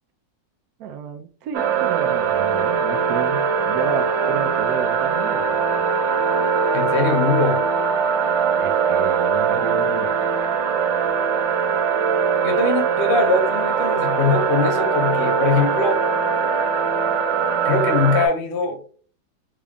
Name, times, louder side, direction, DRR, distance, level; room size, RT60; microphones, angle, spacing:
voice 1, 0.8-5.6 8.6-10.1, right 7 dB, 70° right, 0.9 m, -31 dB
sound 1, 1.5-18.3, right 6 dB, 90° right, 1.3 m, -21 dB
voice 2, 6.7-7.7 12.4-16.0 17.6-18.8, left 4 dB, 60° left, 0.5 m, -22 dB
3.6 x 3.5 x 2.3 m
omnidirectional pair, 2.0 m